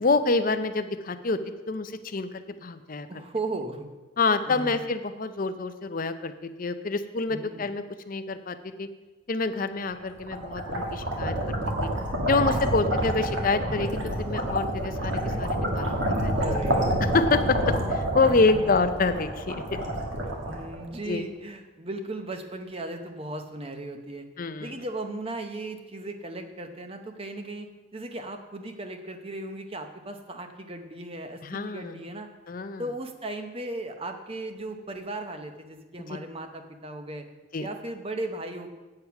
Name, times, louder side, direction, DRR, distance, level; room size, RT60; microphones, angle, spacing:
voice 1, 0.0-1.4 1.7-3.1 4.2-8.9 9.3-11.5 11.8-11.9 12.3-16.5 17.1-19.8 21.1-21.2 24.4-24.7 31.4-32.0 32.5-32.8 36.1-36.2 37.5-37.7, left 3 dB, 40° left, 9 dB, 0.5 m, -27 dB
voice 2, 3.1-3.9 4.5-4.8 7.3-7.7 16.3-17.0 18.2-18.8 20.5-24.3 24.6-32.3 32.8-37.3 37.6-38.7, right 2 dB, 25° right, 6 dB, 0.8 m, -36 dB
sound 1, 10.0-21.1, right 1 dB, 60° right, 1.8 m, -28 dB
8.6 x 8.0 x 5.8 m, 1.2 s
head